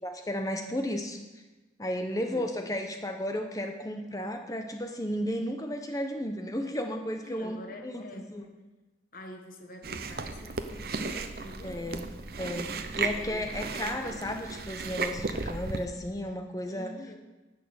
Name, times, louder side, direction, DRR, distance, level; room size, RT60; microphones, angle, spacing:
voice 1, 0.0-1.2 1.8-7.6 7.8-8.4 11.6-12.1 12.4-16.9, left 1 dB, 20° left, 4 dB, 0.8 m, -33 dB
voice 2, 2.0-2.5 7.2-8.4 9.1-12.0 13.1-13.8 16.6-17.2, left 1 dB, 45° left, 4 dB, 1.3 m, -46 dB
Chewing mastication, 9.8-15.9, right 4 dB, 55° right, 0.7 m, -35 dB
10.5 x 8.7 x 6.4 m, 1.1 s
head